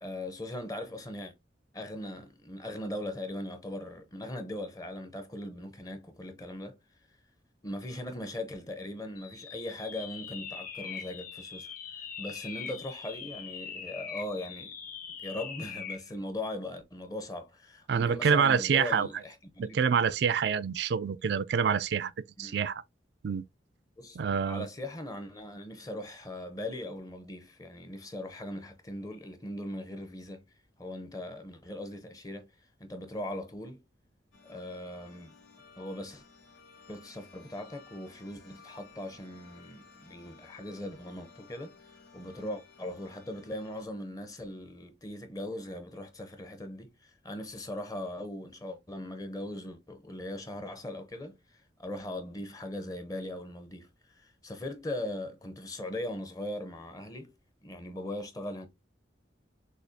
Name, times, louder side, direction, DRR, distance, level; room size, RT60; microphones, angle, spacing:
voice 1, 0.0-1.3 1.7-6.8 7.6-14.7 15.2-20.0 22.4-22.6 24.0-24.2 24.5-30.4 30.8-33.8 34.4-35.3 35.8-36.2 36.9-41.7 42.1-57.3 57.6-58.7, left 1 dB, 20° left, 0.7 m, -40 dB
sound 1, 9.2-16.1, left 7 dB, 50° left, 1.0 m, -42 dB
voice 2, 17.9-19.1 19.6-22.1 22.4-22.8 23.2-23.4 24.2-24.7, right 6 dB, 65° right, 0.4 m, -26 dB
sound 2, 34.3-43.9, left 4 dB, 85° left, 1.9 m, -56 dB
6.5 x 2.8 x 2.7 m
head